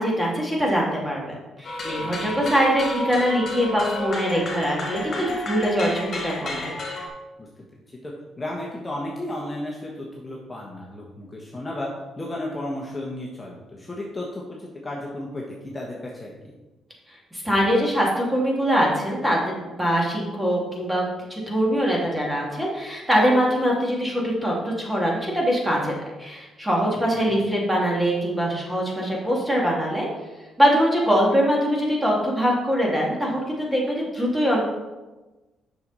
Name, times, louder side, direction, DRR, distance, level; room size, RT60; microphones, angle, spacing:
voice 1, 0.0-6.7 17.3-21.0 21.3-25.9 26.2-30.1 30.6-34.6, equal, 10° right, -2 dB, 2.2 m, -23 dB
sound 1, 1.6-7.1, left 2 dB, 45° left, 2.1 m, -31 dB
voice 2, 2.0-2.4 7.4-7.5 8.0-11.9 12.2-16.5 27.2-27.3, left 1 dB, 20° left, -3 dB, 1.2 m, -34 dB
6.9 x 6.2 x 4.1 m, 1.1 s
cardioid pair, 90°, 0 cm